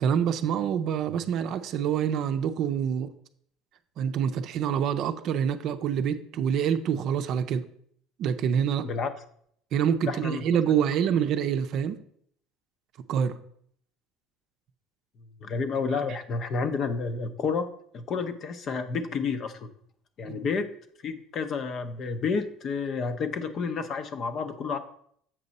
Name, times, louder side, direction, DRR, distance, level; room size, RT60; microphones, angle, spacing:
voice 1, 0.0-3.1 4.0-7.7 8.2-8.9 9.7-12.0 13.1-13.4 20.2-20.4, right 8 dB, 55° right, 9 dB, 0.5 m, -26 dB
voice 2, 10.0-10.5 15.2-19.7 20.2-20.7 21.0-24.8, left 5 dB, 45° left, 10 dB, 0.7 m, -30 dB
7.5 x 5.3 x 4.1 m, 0.66 s
cardioid pair, 120°, 0 cm